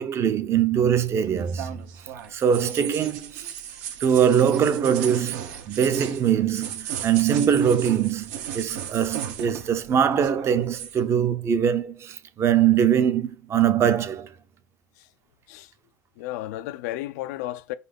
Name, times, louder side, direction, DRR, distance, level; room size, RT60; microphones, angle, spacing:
voice 1, 0.0-1.8 2.3-3.5 4.0-8.3 8.5-14.3, right 8 dB, 30° right, 0.7 m, -22 dB
sound 1, 0.8-9.9 10.1-11.0, right 9 dB, 70° right, 1.2 m, -36 dB
voice 2, 16.2-17.7, left 15 dB, 70° left, 0.5 m, -33 dB
4.9 x 4.2 x 5.3 m
supercardioid pair, 130°, 9 cm